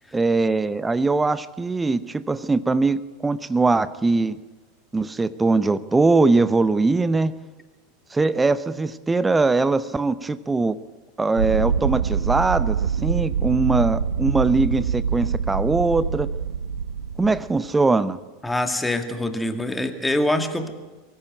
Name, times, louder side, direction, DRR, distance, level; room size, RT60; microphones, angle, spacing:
voice 1, 0.1-4.4 4.9-7.3 8.1-10.8 11.2-16.3 17.2-18.2, right 3 dB, 10° right, 16 dB, 0.8 m, -21 dB
sound 1, 11.4-17.6, right 7 dB, 70° right, 0.8 m, -25 dB
voice 2, 18.4-20.7, left 1 dB, 5° left, 7 dB, 2.1 m, -24 dB
23.5 x 15.0 x 9.3 m, 1.2 s
figure-of-eight pair, 85°, 0 cm